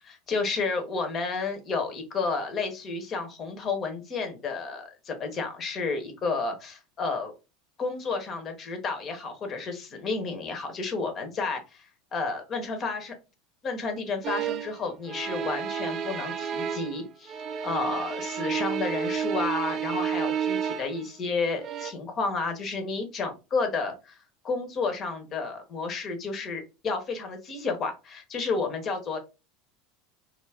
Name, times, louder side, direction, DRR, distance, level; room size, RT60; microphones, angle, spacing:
voice 1, 0.1-7.3 7.8-13.1 13.6-17.4 17.6-24.2 24.4-29.2, left 4 dB, 40° left, 5 dB, 0.7 m, -31 dB
sound 1, 14.2-14.8 15.1-17.0 17.3-21.1 21.6-21.9, right 8 dB, 45° right, 0.4 m, -31 dB
2.3 x 2.0 x 3.3 m, 0.28 s
hypercardioid pair, 85°, 0 cm